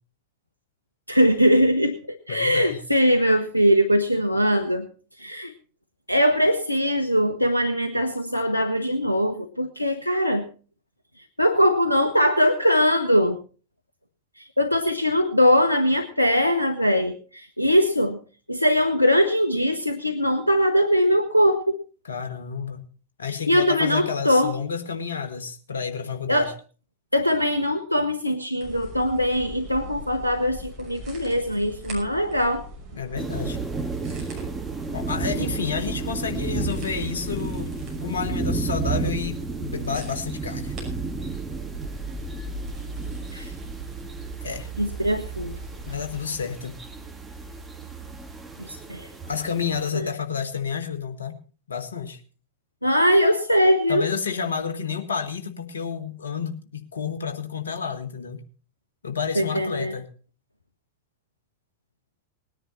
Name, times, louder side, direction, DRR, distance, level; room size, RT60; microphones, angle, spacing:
voice 1, 1.1-4.9 5.2-5.5 6.1-10.5 11.4-13.4 14.4-18.2 18.5-21.8 23.5-24.5 26.3-26.5 27.1-32.6 43.3-43.5 44.8-45.6 48.6-49.1 49.9-50.1 52.8-54.1 59.3-59.9, equal, 90° left, 6 dB, 0.9 m, -21 dB
voice 2, 2.3-2.8 22.0-22.9 23.2-26.5 32.9-33.6 34.9-37.7 38.0-40.7 44.4-44.7 45.9-46.7 49.3-51.3 51.7-52.2 53.9-58.4 59.0-60.1, left 6 dB, 70° left, 7 dB, 1.5 m, -30 dB
sound 1, 28.6-46.0, equal, 30° right, 6.0 m, -41 dB
sound 2, 33.2-49.9, right 4 dB, 10° right, 1.8 m, -32 dB
19.0 x 10.0 x 4.1 m, 0.38 s
figure-of-eight pair, 90°, 0 cm